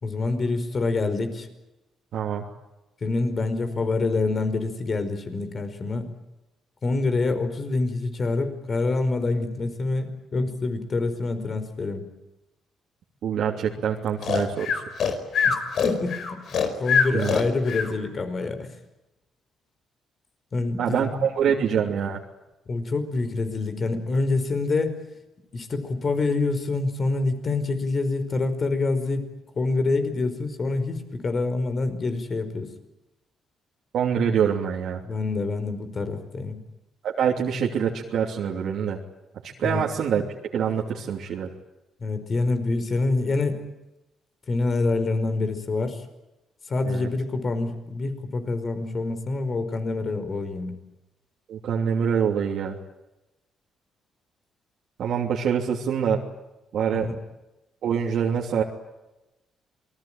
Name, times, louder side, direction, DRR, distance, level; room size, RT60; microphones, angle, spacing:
voice 1, 0.0-1.5 3.0-6.1 6.8-12.1 15.4-16.4 16.8-18.7 20.5-21.0 22.7-25.0 25.5-29.3 29.6-32.7 35.0-36.6 39.6-39.8 42.0-43.6 44.5-46.0 46.7-50.8 56.9-57.1, left 3 dB, 40° left, 9 dB, 5.0 m, -26 dB
voice 2, 2.1-2.5 13.2-14.8 17.1-17.4 20.8-22.2 33.9-35.0 37.0-39.0 39.4-40.2 40.5-41.5 46.8-47.1 51.5-52.8 55.0-56.2 56.7-57.1 57.8-58.6, right 7 dB, 70° right, -2 dB, 3.0 m, -25 dB
Breathing, 14.2-17.9, left 6 dB, 65° left, 4.9 m, -23 dB
28.0 x 21.5 x 9.0 m, 0.98 s
cardioid pair, 90°, 0 cm